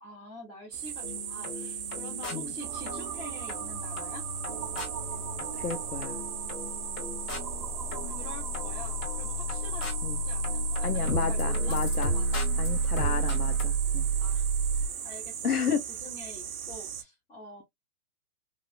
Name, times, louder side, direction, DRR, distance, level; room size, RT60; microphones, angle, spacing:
voice 1, 0.0-4.2 8.0-9.8 10.2-11.8 12.1-12.4 14.2-14.4 15.0-15.3 15.6-17.6, left 1 dB, 15° left, 0.8 m, -46 dB
sound 1, 0.7-17.0, right 9 dB, 75° right, 0.8 m, -38 dB
sound 2, 1.0-13.6, left 1 dB, 40° left, 2.0 m, -39 dB
sound 3, 2.6-14.9, right 3 dB, 20° right, 0.6 m, -31 dB
voice 2, 5.5-6.2 10.0-10.2 10.8-12.1 12.6-14.1 15.4-15.8, left 7 dB, 85° left, 0.8 m, -32 dB
3.2 x 2.4 x 2.2 m
hypercardioid pair, 125°, 44 cm